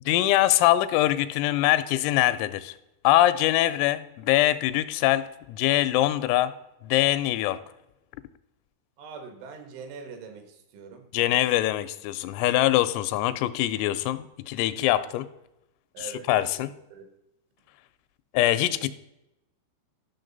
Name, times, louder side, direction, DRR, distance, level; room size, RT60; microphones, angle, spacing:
voice 1, 0.1-2.7 3.0-6.5 6.8-7.6 11.1-15.2 16.3-16.7 18.3-18.9, left 15 dB, 85° left, 13 dB, 3.2 m, -23 dB
voice 2, 9.0-11.1 15.9-17.1, right 5 dB, 75° right, 6 dB, 3.5 m, -43 dB
12.5 x 6.3 x 3.9 m, 0.89 s
omnidirectional pair, 5.9 m